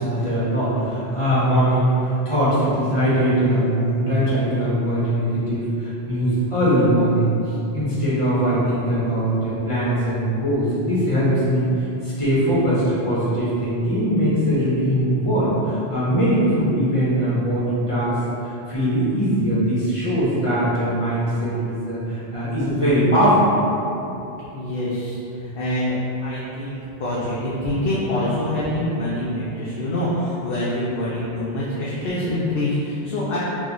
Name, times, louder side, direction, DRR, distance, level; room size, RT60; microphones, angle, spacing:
voice 1, 0.0-18.1 18.4-23.5, equal, 35° left, -11 dB, 1.0 m, -21 dB
voice 2, 24.5-26.0 26.2-33.4, left 1 dB, 65° left, -7 dB, 0.7 m, -25 dB
3.0 x 2.4 x 3.9 m, 2.9 s
omnidirectional pair, 1.0 m